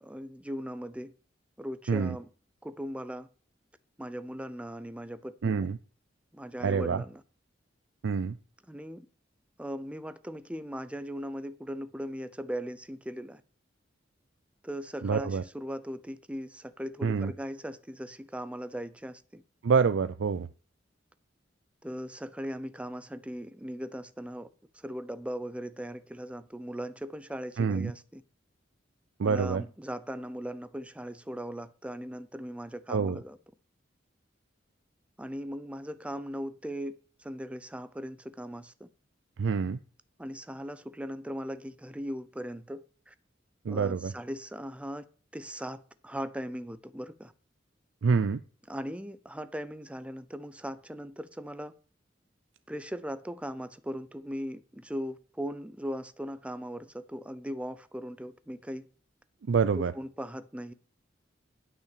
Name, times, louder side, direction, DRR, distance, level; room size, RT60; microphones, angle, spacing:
voice 1, 0.0-1.1 1.6-2.3 2.6-3.3 4.0-5.7 6.3-7.2 8.7-9.1 9.6-13.4 14.6-19.4 21.8-24.5 24.7-28.2 29.2-33.4 35.2-38.9 40.2-43.1 43.7-45.1 45.3-47.3 48.7-51.7 52.7-58.9 59.8-60.7, equal, 5° right, 0.5 m, -39 dB
voice 2, 5.4-5.8 6.6-7.0 8.0-8.4 15.0-15.4 17.0-17.3 19.6-20.5 27.6-27.9 29.2-29.6 32.9-33.2 39.4-39.8 43.7-44.1 48.0-48.4 59.5-59.9, right 5 dB, 80° right, 0.4 m, -26 dB
9.4 x 5.7 x 6.7 m
head